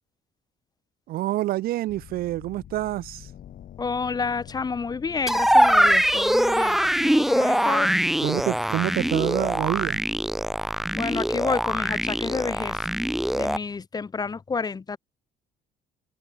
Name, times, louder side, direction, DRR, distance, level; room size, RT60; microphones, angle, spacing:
voice 1, 1.1-3.3 8.2-10.0, right 16 dB, 65° right, 0.4 m, -27 dB
sound 1, 1.9-10.9, left 11 dB, 55° left, 2.2 m, -47 dB
voice 2, 3.8-7.9 10.9-12.9 13.3-15.0, left 5 dB, 25° left, 0.8 m, -29 dB
sound 2, 5.3-13.6, equal, ahead, 0.4 m, -22 dB
cardioid pair, 110°, 17 cm